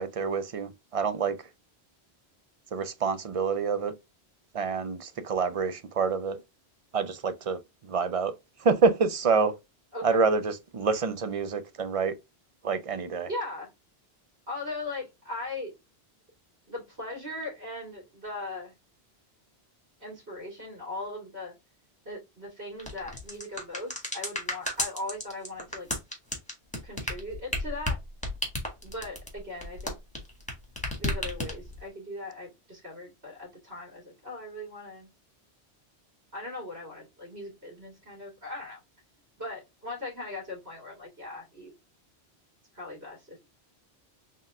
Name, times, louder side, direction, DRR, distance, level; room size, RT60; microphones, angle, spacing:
voice 1, 0.0-1.4 2.7-3.9 4.5-6.4 6.9-8.3 8.6-9.6 10.0-12.1 12.6-13.3, right 5 dB, 50° right, 0.4 m, -27 dB
voice 2, 9.9-10.3 13.3-13.7 14.5-15.7 16.7-18.7 20.0-21.5 22.0-25.9 26.8-28.0 28.8-30.0 31.0-35.1 36.3-38.8 39.4-41.7 42.7-43.4, left 2 dB, 70° right, 2.6 m, -39 dB
sound 1, 22.8-30.5 30.8-31.8, left 1 dB, 5° left, 1.6 m, -32 dB
4.3 x 3.6 x 2.3 m
omnidirectional pair, 1.1 m